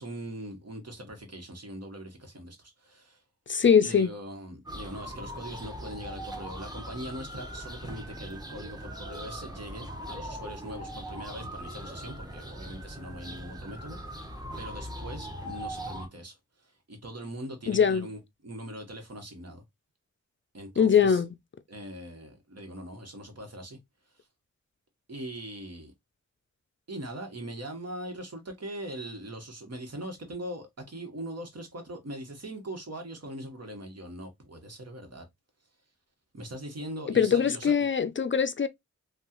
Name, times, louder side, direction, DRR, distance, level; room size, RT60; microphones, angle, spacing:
voice 1, 0.0-3.2 3.8-14.3 14.6-19.6 20.5-21.2 21.7-23.8 25.1-25.9 26.9-35.2 36.3-37.9, right 1 dB, 60° right, 1.3 m, -41 dB
voice 2, 3.5-4.1 17.7-18.1 20.8-21.3 37.1-38.7, left 7 dB, 45° left, 0.4 m, -22 dB
sound 1, 4.7-16.1, equal, 15° right, 1.0 m, -40 dB
3.4 x 2.3 x 2.9 m
cardioid pair, 45°, 29 cm